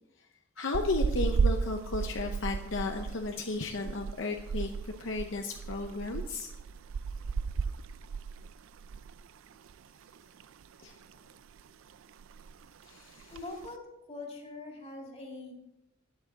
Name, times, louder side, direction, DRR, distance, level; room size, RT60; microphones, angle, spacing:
voice 1, 0.6-6.5 10.8-11.0 12.8-13.4, left 3 dB, 60° left, 4 dB, 0.7 m, -34 dB
sound 1, 0.7-9.3 9.5-9.7 10.1-11.0 11.3-11.7 11.9-12.0 12.2-12.7 13.2-13.7, right 5 dB, 70° right, 0.4 m, -34 dB
voice 2, 13.3-13.8 14.1-15.5, left 2 dB, 30° left, 1 dB, 2.2 m, -42 dB
12.0 x 8.7 x 3.9 m, 0.88 s
head